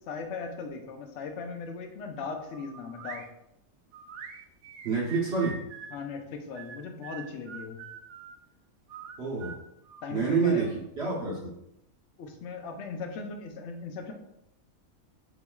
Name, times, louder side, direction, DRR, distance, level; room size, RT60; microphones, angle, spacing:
voice 1, 0.1-3.3 5.9-7.8 10.0-10.7 12.2-14.1, left 4 dB, 65° left, 4 dB, 0.9 m, -38 dB
sound 1, 2.5-3.3 3.9-6.0 6.6-8.4 8.9-10.7, right 6 dB, 85° right, 1.0 m, -45 dB
voice 2, 4.8-5.6 9.2-9.5 10.1-10.7 11.0-11.5, right 5 dB, 50° right, -5 dB, 1.1 m, -27 dB
6.9 x 3.1 x 2.3 m, 0.82 s
omnidirectional pair, 1.4 m